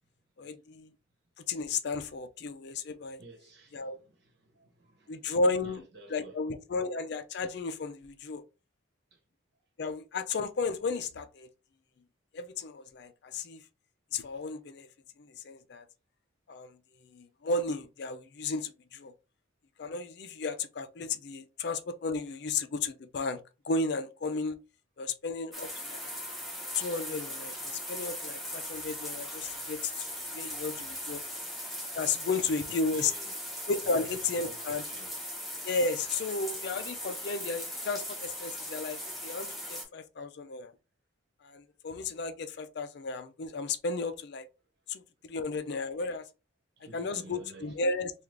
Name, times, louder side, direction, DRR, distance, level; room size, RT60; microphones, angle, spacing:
voice 1, 0.4-0.9 1.5-3.2 3.7-4.0 5.1-5.8 6.1-8.4 9.8-11.5 12.3-13.6 14.1-14.9 15.2-15.8 16.5-16.8 17.1-19.1 19.8-24.6 25.0-26.1 26.7-30.1 30.3-31.2 31.9-33.1 33.7-34.8 35.6-40.7 41.4-44.5 44.9-46.3 46.9-48.1, left 3 dB, 55° left, 0.4 m, -33 dB
voice 2, 3.2-6.4 9.1-9.2 29.7-35.3 45.3-45.4 45.8-46.0 46.8-47.8, right 2 dB, 55° right, 1.3 m, -54 dB
sound 1, 25.5-39.8, equal, ahead, 0.9 m, -39 dB
3.5 x 2.4 x 3.2 m
head